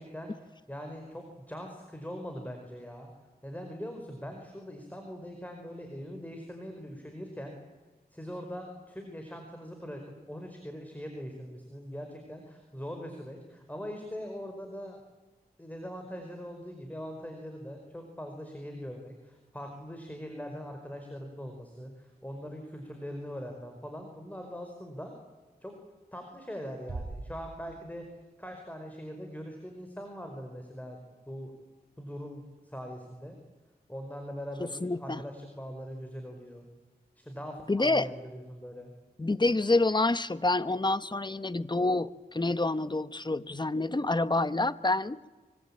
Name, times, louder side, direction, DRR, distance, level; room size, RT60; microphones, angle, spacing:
voice 1, 0.0-3.1 3.4-7.5 8.1-10.0 10.3-15.0 15.6-25.1 25.6-25.8 26.1-28.0 28.4-31.0 31.3-31.5 32.0-33.4 33.9-36.7 37.2-38.9, equal, 10° left, 4 dB, 5.0 m, -41 dB
Bass drum, 26.9-28.3, right 3 dB, 60° right, 2.4 m, -41 dB
voice 2, 34.6-35.2 37.7-38.1 39.2-45.2, left 2 dB, 25° left, 14 dB, 1.1 m, -27 dB
25.0 x 25.0 x 8.9 m, 1.3 s
wide cardioid pair, 60°, 17 cm